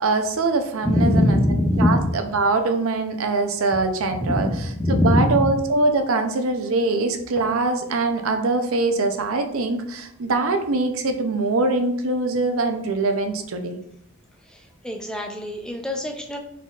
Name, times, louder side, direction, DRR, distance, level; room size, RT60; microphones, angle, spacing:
voice 1, 0.0-1.4 1.8-4.5 4.9-13.8, right 3 dB, 75° right, 6 dB, 0.5 m, -23 dB
voice 2, 0.8-2.2 4.2-5.4 14.5-16.4, left 1 dB, 5° left, 2 dB, 0.4 m, -22 dB
4.0 x 3.8 x 2.4 m, 0.74 s
head